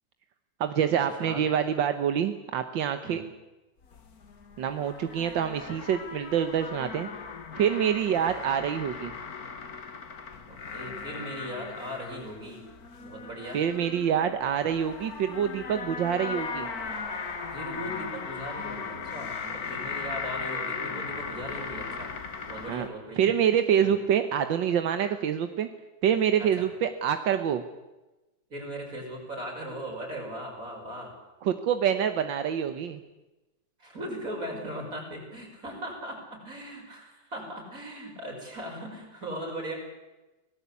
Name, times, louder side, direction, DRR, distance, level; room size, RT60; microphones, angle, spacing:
voice 1, 0.6-3.2 4.6-7.1 7.6-9.1 13.5-16.7 22.7-22.9 23.2-25.7 26.0-27.6 31.4-33.0, right 8 dB, 85° right, 9 dB, 1.8 m, -26 dB
sound 1, 3.8-22.9, left 5 dB, 55° left, 2.1 m, -38 dB
voice 2, 10.5-12.6 13.0-13.6 17.5-22.1 22.5-23.2 23.8-24.0 26.4-26.7 28.5-31.1 33.8-39.7, equal, 45° right, 0 dB, 6.8 m, -38 dB
Train, 16.1-20.5, right 1 dB, 30° right, 4.5 m, -46 dB
26.0 x 18.5 x 8.5 m, 1.1 s
omnidirectional pair, 2.0 m